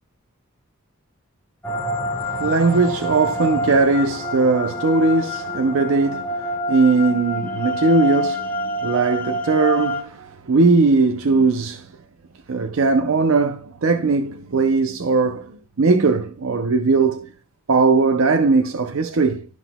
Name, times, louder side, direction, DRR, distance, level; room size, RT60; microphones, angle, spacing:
sound 1, 1.6-10.0, equal, 10° left, 1.2 m, -27 dB
voice 1, 2.3-11.9 12.5-17.3 17.7-19.5, right 3 dB, 70° right, 0.6 m, -19 dB
13.0 x 5.9 x 2.2 m
head